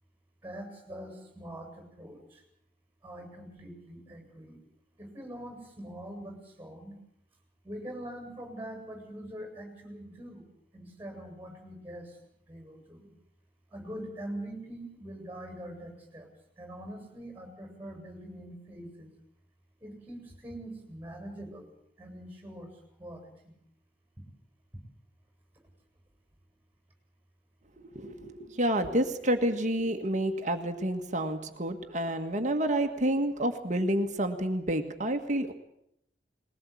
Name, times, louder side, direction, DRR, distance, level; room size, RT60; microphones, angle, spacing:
voice 1, 0.4-2.4 3.0-4.6 5.0-7.0 7.6-10.4 10.7-12.2 12.5-13.1 13.7-16.3 16.6-19.1 19.8-21.7 22.0-22.7 23.0-23.5, right 1 dB, 10° right, 3 dB, 7.6 m, -43 dB
voice 2, 27.8-35.5, right 1 dB, 40° right, 5 dB, 1.7 m, -29 dB
21.5 x 19.0 x 8.6 m, 0.76 s
head